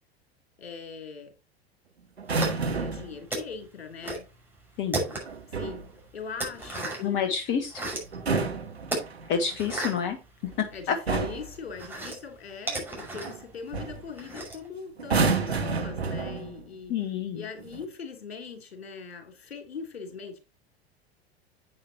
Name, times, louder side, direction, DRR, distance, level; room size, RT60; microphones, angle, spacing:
voice 1, 0.6-1.3 2.5-4.2 5.5-5.8 6.1-7.3 8.3-8.5 10.7-16.9 17.3-20.4, left 5 dB, 70° left, 4 dB, 3.6 m, -41 dB
sound 1, 2.2-3.2 5.3-5.9 8.0-9.4 10.4-10.7 11.1-11.6 13.2-13.4 13.7-14.0 15.0-16.7 17.6-17.8, right 4 dB, 80° right, 1.4 m, -29 dB
sound 2, 2.3-2.9 3.3-4.3 4.6-5.5 5.9-7.2 7.5-8.2 8.8-10.9 11.2-14.7, right 2 dB, 5° right, 6.1 m, -34 dB
voice 2, 4.8-5.1 7.0-7.8 9.3-10.2 10.9-11.0 16.9-17.4, left 7 dB, 40° left, 6 dB, 1.4 m, -28 dB
10.0 x 8.6 x 3.0 m, 0.29 s
figure-of-eight pair, 85°, 32 cm